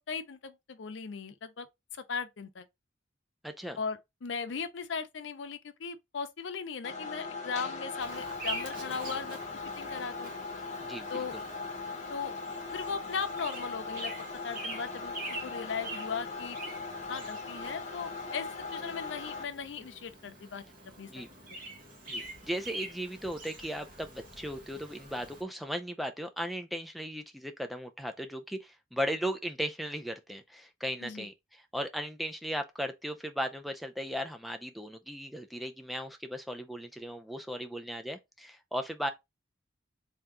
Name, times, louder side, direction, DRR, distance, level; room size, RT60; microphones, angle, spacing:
voice 1, 0.1-1.7 1.9-2.6 3.8-10.3 11.1-11.4 12.1-12.3 12.7-14.1 14.4-16.6 17.1-20.6 21.0-21.3 31.0-31.3, left 5 dB, 80° left, 0.5 m, -38 dB
voice 2, 3.4-3.8 10.8-11.4 21.1-21.3 22.1-39.1, equal, ahead, 0.4 m, -37 dB
sound 1, 6.8-19.4, left 3 dB, 40° left, 0.8 m, -39 dB
Bird vocalization bird call bird song, 8.0-25.4, right 2 dB, 50° right, 1.3 m, -45 dB
3.5 x 2.8 x 3.6 m
head